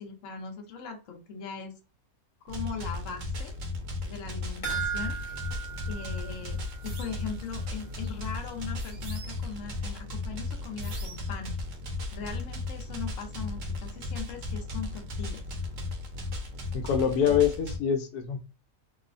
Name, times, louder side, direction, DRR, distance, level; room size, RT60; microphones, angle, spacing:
voice 1, 0.0-1.7 2.4-3.5 4.0-5.2 5.9-11.5 12.1-15.4 17.3-17.4, left 5 dB, 60° left, 1.0 m, -40 dB
sound 1, 2.5-17.8, left 2 dB, 65° right, 0.9 m, -35 dB
sound 2, 4.6-7.2 7.5-7.6 8.0-8.1, right 6 dB, 35° left, 0.6 m, -36 dB
sound 3, 6.8-7.3 8.8-9.6 10.8-11.4, right 3 dB, 85° right, 1.3 m, -46 dB
voice 2, 16.7-18.4, left 8 dB, 85° left, 1.1 m, -25 dB
3.0 x 2.1 x 2.4 m
omnidirectional pair, 1.6 m